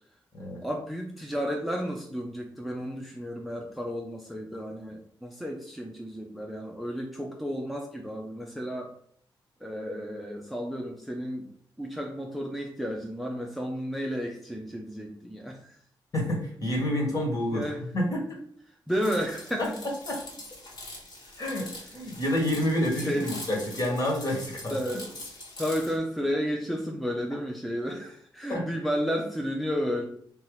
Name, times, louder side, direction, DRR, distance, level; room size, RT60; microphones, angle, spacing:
voice 1, 0.6-8.9 9.6-11.5 11.8-15.8 17.5-17.8 18.9-19.8 23.0-23.4 24.7-25.2 25.6-30.1, equal, ahead, 0 dB, 0.6 m, -32 dB
voice 2, 16.1-18.2 19.6-19.7 20.1-20.2 21.4-21.7 21.9-24.8 28.5-28.6, left 1 dB, 45° left, -1 dB, 1.6 m, -28 dB
sound 1, 18.9-26.0, left 2 dB, 60° left, 1.6 m, -43 dB
3.7 x 2.8 x 4.8 m, 0.62 s
cardioid pair, 95°, 8 cm